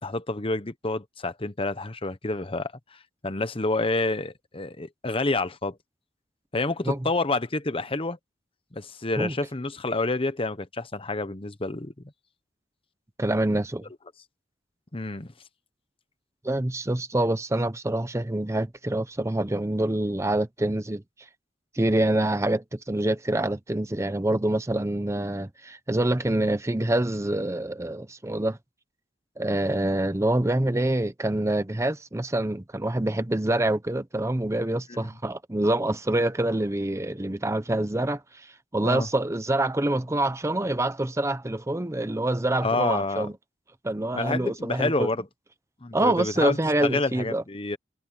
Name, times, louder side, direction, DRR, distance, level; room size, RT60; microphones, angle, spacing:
voice 1, 0.0-2.7 3.2-5.8 6.5-8.2 8.7-11.9 14.9-15.3 34.9-35.1 38.8-39.1 42.6-43.3 44.1-45.3 45.8-47.8, left 2 dB, 30° left, 1.0 m, -28 dB
voice 2, 13.2-13.8 16.4-21.0 21.7-28.6 29.4-38.5 38.7-43.3 43.8-45.1 45.9-47.4, right 1 dB, 15° right, 0.7 m, -26 dB
head